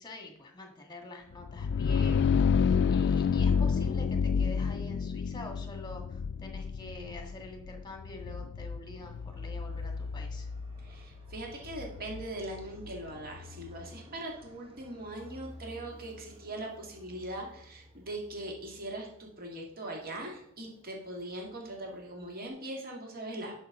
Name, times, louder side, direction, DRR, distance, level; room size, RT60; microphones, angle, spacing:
voice 1, 0.0-10.5, left 2 dB, 20° left, 3 dB, 1.7 m, -46 dB
sound 1, 1.4-13.0, left 6 dB, 50° left, 0.3 m, -30 dB
Fixed-wing aircraft airplane, 9.0-22.5, left 2 dB, 25° right, 1.3 m, -55 dB
voice 2, 10.8-23.6, right 1 dB, 45° right, 0 dB, 1.9 m, -41 dB
11.0 x 6.3 x 3.7 m, 0.76 s
head